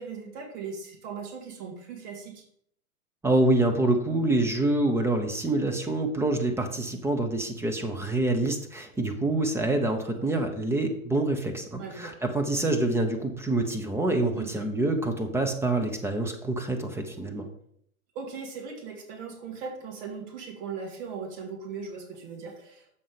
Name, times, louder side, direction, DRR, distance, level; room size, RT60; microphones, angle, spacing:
voice 1, 0.0-2.4 10.0-10.1 11.8-12.1 14.4-14.7 18.2-22.9, right 5 dB, 45° right, 2 dB, 1.9 m, -39 dB
voice 2, 3.2-17.5, right 2 dB, 5° right, 4 dB, 0.7 m, -26 dB
7.0 x 5.4 x 5.0 m, 0.67 s
hypercardioid pair, 115°, 41 cm